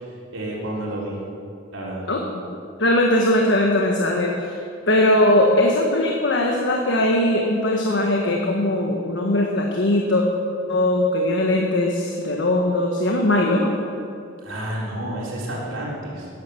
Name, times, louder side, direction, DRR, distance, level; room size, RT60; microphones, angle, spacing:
voice 1, 0.3-1.2 1.7-2.0 14.4-16.3, right 1 dB, 90° right, -5 dB, 4.0 m, -30 dB
voice 2, 2.8-4.6 4.9-10.2 10.7-13.7, left 1 dB, 65° left, 0 dB, 1.4 m, -20 dB
17.0 x 10.5 x 7.0 m, 2.5 s
head